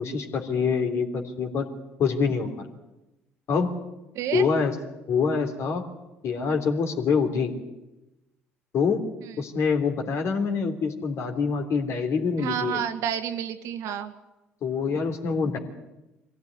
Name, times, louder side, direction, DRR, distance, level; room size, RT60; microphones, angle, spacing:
voice 1, 0.0-1.7 2.0-2.7 3.5-3.7 4.3-4.7 5.1-5.8 6.2-7.5 8.7-9.0 9.4-12.8 14.6-15.6, left 5 dB, 55° left, 5 dB, 3.2 m, -25 dB
voice 2, 4.2-4.5 9.2-9.4 12.4-14.1, right 9 dB, 65° right, 7 dB, 1.7 m, -30 dB
23.5 x 16.5 x 9.6 m, 0.98 s
hypercardioid pair, 55°, 6 cm